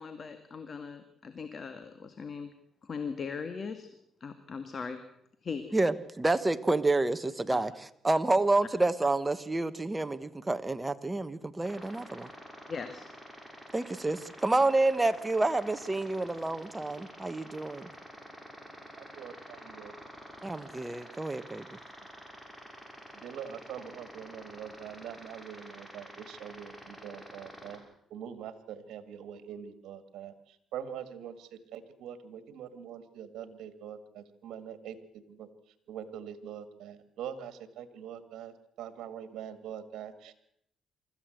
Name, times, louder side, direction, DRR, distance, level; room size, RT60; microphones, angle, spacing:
voice 1, 0.0-2.5 2.8-3.9 4.2-5.0 5.4-5.6 12.7-13.1, left 5 dB, 45° left, 9 dB, 1.8 m, -39 dB
voice 2, 5.7-12.3 13.7-17.9 20.4-21.7, right 2 dB, 15° right, 12 dB, 1.2 m, -29 dB
sound 1, 11.6-27.8, equal, 10° left, 6.0 m, -48 dB
voice 3, 19.0-20.0 23.1-27.8 28.1-35.5 35.9-40.3, right 8 dB, 80° right, 12 dB, 1.9 m, -43 dB
24.5 x 14.0 x 7.9 m, 0.76 s
cardioid pair, 90°, 0 cm